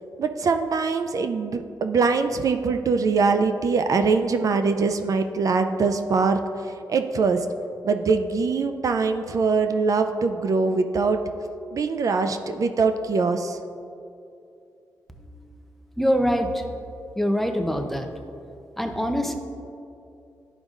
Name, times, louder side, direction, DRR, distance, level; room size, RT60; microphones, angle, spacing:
voice 1, 0.2-7.5 7.8-11.2 11.7-13.6, right 4 dB, 55° right, 8 dB, 0.4 m, -23 dB
voice 2, 16.0-16.6 17.2-18.1 18.8-19.3, equal, 5° left, 4 dB, 0.6 m, -23 dB
11.5 x 5.1 x 2.4 m, 2.6 s
cardioid pair, 100°, 7 cm